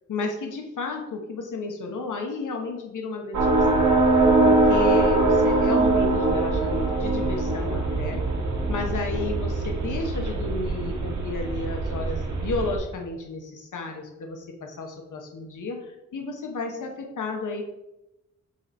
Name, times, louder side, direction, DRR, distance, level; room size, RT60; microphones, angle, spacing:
voice 1, 0.1-3.9 4.4-8.2 8.7-17.6, left 3 dB, 85° left, 2 dB, 1.0 m, -32 dB
sound 1, 3.3-12.8, right 2 dB, 70° right, 1.5 m, -22 dB
7.8 x 4.2 x 4.4 m, 0.94 s
wide cardioid pair, 160°, 30 cm